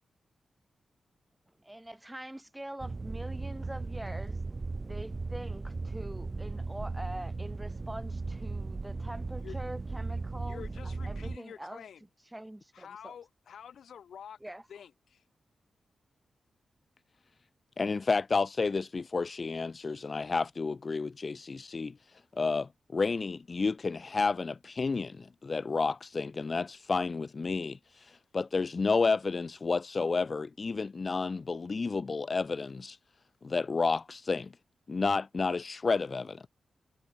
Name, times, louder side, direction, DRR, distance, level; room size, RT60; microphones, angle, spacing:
voice 1, 1.6-4.4 4.9-11.8 12.3-12.6 13.0-13.1 14.4-14.7, right 1 dB, 10° right, 3.1 m, -44 dB
tunnel moody hum drone, 2.8-11.4, right 3 dB, 30° right, 1.2 m, -37 dB
voice 2, 10.4-12.0 12.8-14.4 14.7-15.2, left 8 dB, 80° left, 1.1 m, -48 dB
voice 3, 17.8-33.0 33.4-34.5 34.9-36.5, left 4 dB, 35° left, 0.5 m, -31 dB
wide cardioid pair, 120°, 0 cm